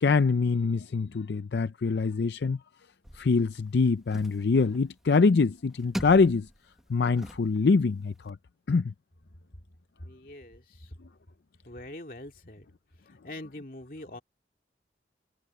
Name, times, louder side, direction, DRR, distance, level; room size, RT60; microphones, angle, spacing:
voice 1, 0.0-2.6 3.2-6.5 6.9-8.4 8.7-8.9, left 4 dB, 75° left, 0.5 m, -24 dB
sound 1, 3.0-8.3, equal, ahead, 1.3 m, -43 dB
voice 2, 10.0-10.9 11.7-12.7 13.1-14.2, left 1 dB, 50° left, 2.6 m, -43 dB
head